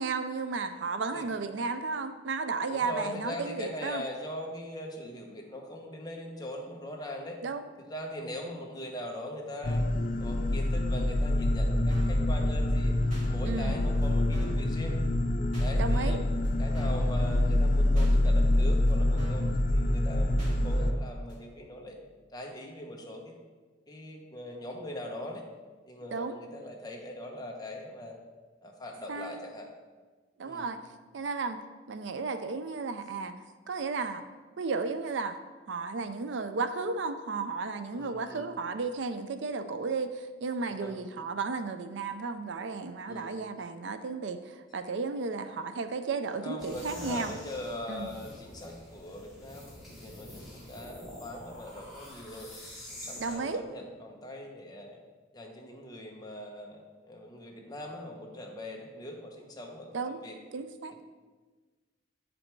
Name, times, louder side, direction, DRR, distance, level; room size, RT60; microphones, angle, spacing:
voice 1, 0.0-4.0 7.4-7.6 13.5-13.8 15.8-16.2 26.1-26.4 29.1-29.4 30.4-30.8 31.1-31.6 31.9-33.3 33.7-34.3 34.6-35.4 35.7-47.3 47.9-48.1 53.2-53.6 59.9-60.2 60.5-61.0, right 4 dB, 70° right, 10 dB, 0.5 m, -33 dB
voice 2, 2.7-7.4 7.8-9.8 10.2-12.9 13.3-15.0 15.6-16.2 16.6-22.0 22.3-23.4 23.9-25.4 25.9-28.2 28.6-29.7 30.4-30.7 37.9-38.4 40.7-41.0 43.1-43.4 46.4-52.5 52.9-55.0 55.3-60.3, left 1 dB, 20° left, 0 dB, 1.0 m, -41 dB
sound 1, 9.6-20.9, left 1 dB, 45° left, 0.5 m, -26 dB
sound 2, 11.9-12.2 13.1-13.3 14.0-14.1 14.3-14.7 15.5-15.7 16.4-16.5 16.7-17.1 18.0-18.1 18.9-19.0 19.2-19.5 20.4-20.5 21.3-21.4, equal, 40° right, 2.6 m, -44 dB
sound 3, 46.6-53.4, left 1 dB, ahead, 2.4 m, -46 dB
8.6 x 5.1 x 4.6 m, 1.3 s
head